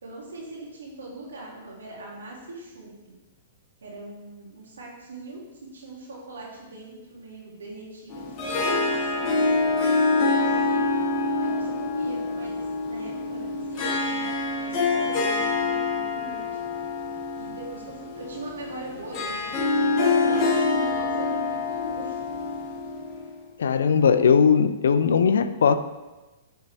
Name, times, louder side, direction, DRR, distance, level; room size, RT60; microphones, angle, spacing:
voice 1, 0.0-3.2 3.8-10.9 11.4-14.3 14.5-16.5 17.4-22.2, right 2 dB, 85° right, -3 dB, 2.3 m, -40 dB
Harp, 8.1-23.4, left 3 dB, 35° left, 1.8 m, -26 dB
voice 2, 23.6-25.7, left 6 dB, 80° left, 11 dB, 0.5 m, -19 dB
10.5 x 4.5 x 3.4 m, 1.1 s
hypercardioid pair, 120°, 0 cm